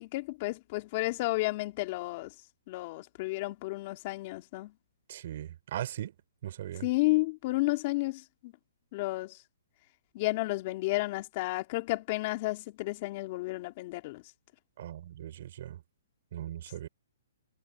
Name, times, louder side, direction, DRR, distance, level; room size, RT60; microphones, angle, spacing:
voice 1, 0.0-2.3 2.7-4.7 6.8-8.5 8.9-9.4 10.1-14.2, left 21 dB, 35° left, 2.9 m, -32 dB
voice 2, 5.1-6.1 6.4-6.9 14.8-15.8 16.3-16.9, right 11 dB, 50° right, 6.2 m, -39 dB
hypercardioid pair, 155°, 0 cm